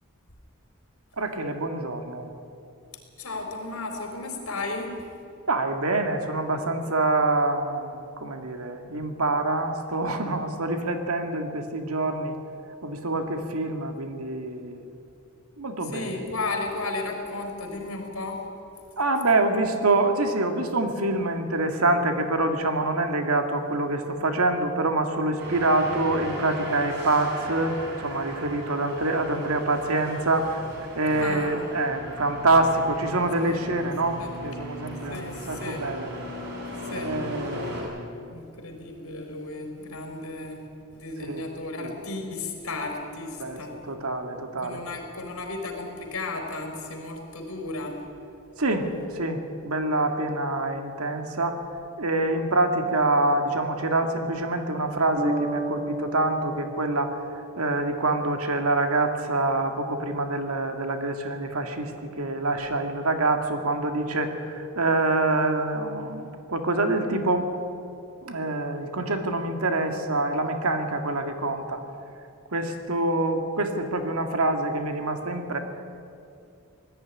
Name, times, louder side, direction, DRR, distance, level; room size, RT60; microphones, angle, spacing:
voice 1, 1.2-2.3 5.5-12.4 12.8-14.9 15.6-16.2 19.0-30.7 31.0-36.1 36.9-38.3 41.3-41.5 41.8-42.0 43.4-44.8 48.6-51.6 52.0-57.2 57.6-67.5 68.2-71.8 72.5-75.6, right 2 dB, 80° right, 5 dB, 2.0 m, -26 dB
voice 2, 3.2-4.9 15.8-18.4 31.1-31.7 33.4-33.6 34.2-34.3 35.1-35.8 36.8-37.1 38.3-40.6 40.9-43.8 44.6-48.0 72.9-73.3, left 3 dB, 80° left, 2 dB, 4.2 m, -34 dB
sound 1, 25.4-37.8, equal, 55° right, 6.7 m, -38 dB
Bass guitar, 55.2-58.7, right 2 dB, 35° right, 1.9 m, -34 dB
19.5 x 14.0 x 9.8 m, 2.6 s
head